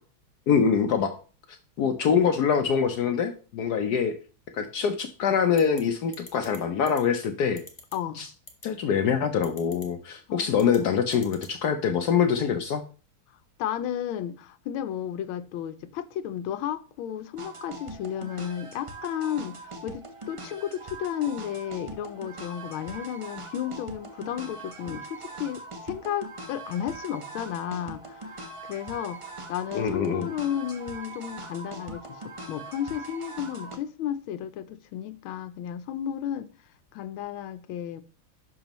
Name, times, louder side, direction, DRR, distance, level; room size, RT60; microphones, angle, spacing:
voice 1, 0.5-1.2 1.5-4.2 4.5-7.6 8.2-8.3 8.6-12.8 29.7-30.3, left 7 dB, 65° left, 1.0 m, -24 dB
sound 1, 5.6-5.8 6.1-6.6 6.9-7.0 7.6-7.9 8.5-8.7 9.4-9.9 10.5-10.8 11.1-11.5, left 2 dB, 15° left, 1.0 m, -44 dB
voice 2, 7.9-8.2 10.3-10.9 13.6-36.5 36.9-38.0, left 10 dB, 85° left, 1.5 m, -33 dB
sound 2, 17.4-33.8, right 2 dB, 40° right, 0.4 m, -41 dB
10.5 x 6.2 x 3.0 m
omnidirectional pair, 2.2 m